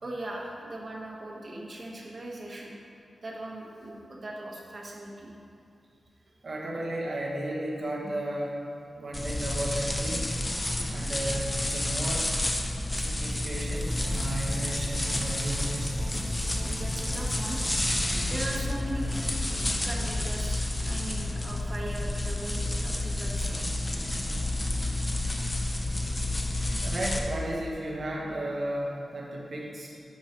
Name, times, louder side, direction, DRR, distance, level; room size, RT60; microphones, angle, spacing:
voice 1, 0.0-2.8 3.2-5.3 16.7-17.6 18.2-19.1 19.8-23.6, right 1 dB, 45° right, -2 dB, 1.1 m, -39 dB
voice 2, 6.4-8.5 9.0-10.4 10.9-12.3 13.0-15.9 26.8-29.9, right 1 dB, 65° right, -3 dB, 1.1 m, -34 dB
sound 1, 9.1-27.2, left 1 dB, 20° left, 0.6 m, -30 dB
sound 2, 13.7-19.9, left 1 dB, 65° left, 1.2 m, -39 dB
10.5 x 4.8 x 2.9 m, 2.5 s
wide cardioid pair, 110°, 0 cm